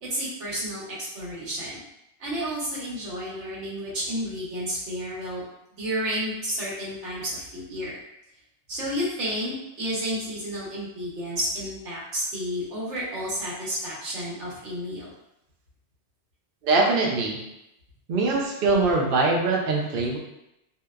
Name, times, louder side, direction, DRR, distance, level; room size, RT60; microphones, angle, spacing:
voice 1, 0.0-1.8 2.2-5.4 5.7-8.0 8.7-15.1, equal, 85° right, -6 dB, 1.2 m, -31 dB
voice 2, 16.6-17.4 18.1-20.2, right 3 dB, 60° right, -1 dB, 0.6 m, -22 dB
2.7 x 2.1 x 2.3 m, 0.86 s
omnidirectional pair, 1.2 m